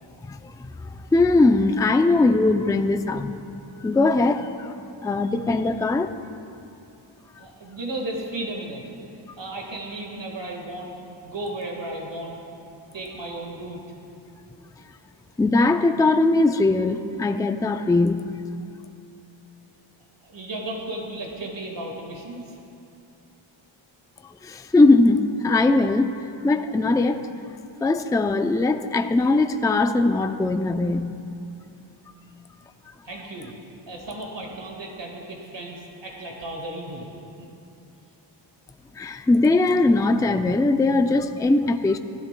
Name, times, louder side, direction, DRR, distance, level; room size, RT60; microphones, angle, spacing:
voice 1, 0.2-3.3 3.8-4.7 5.0-6.1 15.4-18.3 24.4-26.1 26.4-27.3 27.8-31.2 39.0-42.0, left 2 dB, 10° left, 8 dB, 0.3 m, -20 dB
voice 2, 7.4-8.8 9.4-10.9 11.2-12.4 12.9-13.8 20.2-22.4 33.0-33.5 33.9-37.1 37.4-37.5, right 1 dB, 65° right, 0 dB, 1.8 m, -34 dB
17.5 x 12.0 x 2.2 m, 2.7 s
wide cardioid pair, 90°, 47 cm